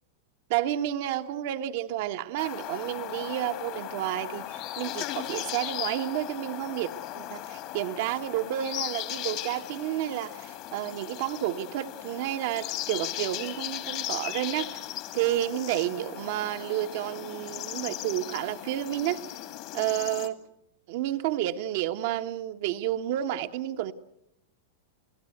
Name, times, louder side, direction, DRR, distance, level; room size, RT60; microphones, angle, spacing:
voice 1, 0.5-14.8 15.1-19.2 19.7-20.4 20.9-23.9, right 13 dB, 55° right, 1.4 m, -30 dB
sound 1, 2.4-20.3, left 14 dB, 50° left, 2.3 m, -37 dB
29.5 x 16.5 x 8.0 m
hypercardioid pair, 105°, 0 cm